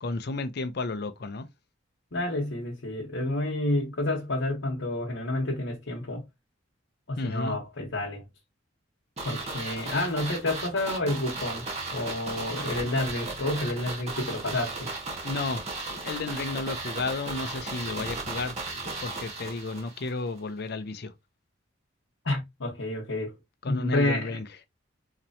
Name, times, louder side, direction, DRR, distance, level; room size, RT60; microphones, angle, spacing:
voice 1, 0.0-1.5 7.2-7.6 15.2-18.5 18.8-21.1 23.6-24.4, left 3 dB, 55° left, 0.6 m, -32 dB
voice 2, 2.1-6.2 7.1-8.2 9.2-14.9 22.2-23.3 23.7-24.4, left 1 dB, 80° left, 1.1 m, -29 dB
sound 1, 9.2-20.1 20.4-20.5, right 3 dB, 35° right, 1.2 m, -36 dB
4.3 x 2.9 x 2.7 m
head